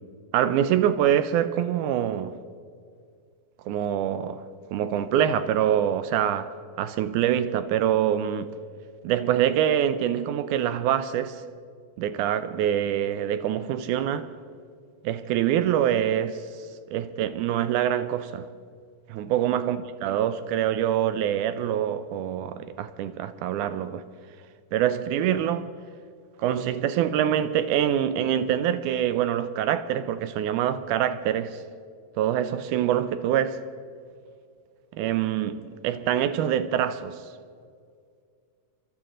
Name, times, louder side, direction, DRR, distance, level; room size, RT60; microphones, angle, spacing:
voice 1, 0.3-2.3 3.7-4.4 4.7-6.5 6.8-8.5 9.0-11.4 12.0-14.3 15.0-16.4 16.9-18.5 19.1-24.0 24.7-25.7 26.4-31.6 32.2-33.6 34.9-37.2, right 10 dB, 80° right, 1.9 m, -25 dB
30.0 x 12.0 x 3.8 m
omnidirectional pair, 3.9 m